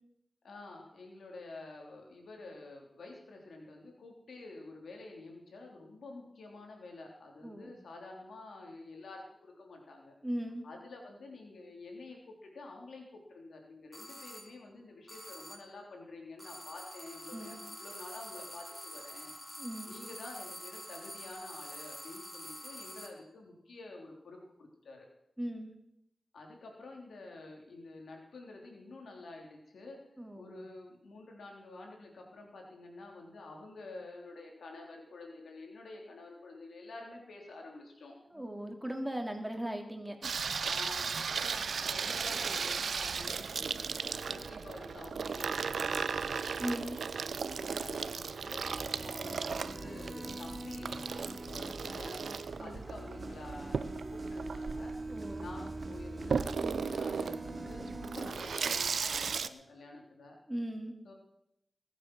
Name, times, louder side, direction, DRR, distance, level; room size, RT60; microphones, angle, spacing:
voice 1, 0.4-10.1 10.6-19.3 19.9-25.1 26.3-30.0 30.3-38.4 40.6-46.5 47.3-54.9 55.4-60.4 61.0-61.1, left 2 dB, 90° left, 1 dB, 3.4 m, -49 dB
voice 2, 7.4-7.8 10.2-10.6 17.3-17.6 19.6-20.0 25.4-25.7 30.2-30.6 38.3-40.3 46.6-47.0 55.1-55.5 56.6-56.9 60.5-60.9, equal, 15° right, 4 dB, 2.9 m, -38 dB
sound 1, 13.9-14.6 15.1-15.8 16.4-23.3, equal, 5° left, 3.2 m, -47 dB
Water tap faucet / Sink (filling or washing), 40.2-59.5, right 5 dB, 80° right, 0.6 m, -36 dB
sound 2, 48.6-58.3, right 2 dB, 55° right, 2.7 m, -42 dB
20.0 x 8.1 x 6.2 m, 0.78 s
cardioid pair, 40°, 0 cm